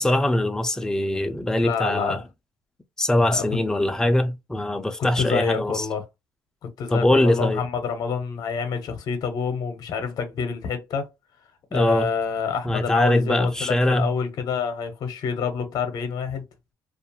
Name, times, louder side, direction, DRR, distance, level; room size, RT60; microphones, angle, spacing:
voice 1, 0.0-2.2 3.0-5.9 6.9-7.6 11.7-12.1 12.6-14.1, left 1 dB, 10° left, 0.4 m, -22 dB
voice 2, 1.6-2.2 3.3-3.4 5.2-6.0 6.8-11.1 11.7-16.4, left 6 dB, 60° left, 0.7 m, -27 dB
2.4 x 2.3 x 2.7 m
cardioid pair, 130°, 7 cm